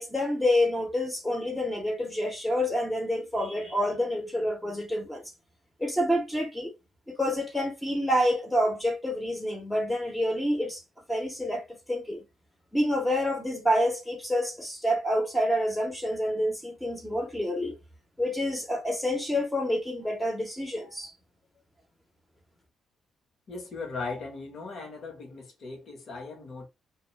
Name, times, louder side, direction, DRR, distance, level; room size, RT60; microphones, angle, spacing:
voice 1, 0.0-5.3 5.8-6.7 7.1-10.8 11.1-12.2 12.7-17.7 18.2-21.1, equal, 5° left, 0.8 m, -28 dB
voice 2, 23.5-26.7, left 4 dB, 55° left, 1.1 m, -38 dB
2.2 x 2.1 x 3.0 m
cardioid pair, 90°, 0 cm